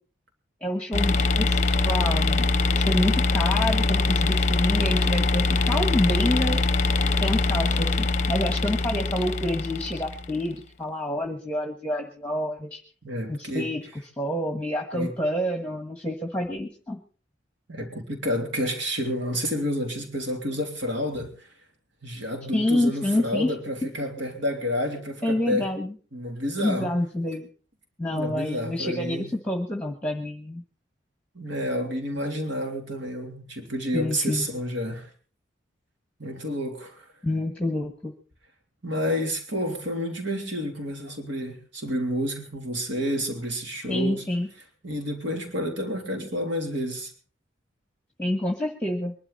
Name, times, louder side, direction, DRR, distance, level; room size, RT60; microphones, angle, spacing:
voice 1, 0.6-6.6 7.2-12.8 13.3-13.8 14.2-17.0 22.5-23.5 25.2-25.9 26.6-27.5 28.0-30.6 33.9-34.5 37.2-38.1 43.9-44.5 48.2-49.1, left 1 dB, 5° left, 4 dB, 1.4 m, -28 dB
sound 1, 0.9-10.4, left 3 dB, 40° left, 0.7 m, -23 dB
voice 2, 13.0-13.7 14.9-15.1 17.7-21.5 22.0-25.7 26.1-26.9 28.1-29.3 31.3-35.1 36.2-37.0 38.8-44.2 44.8-47.1, equal, 70° right, 3 dB, 3.3 m, -30 dB
22.5 x 12.0 x 4.1 m, 0.41 s
head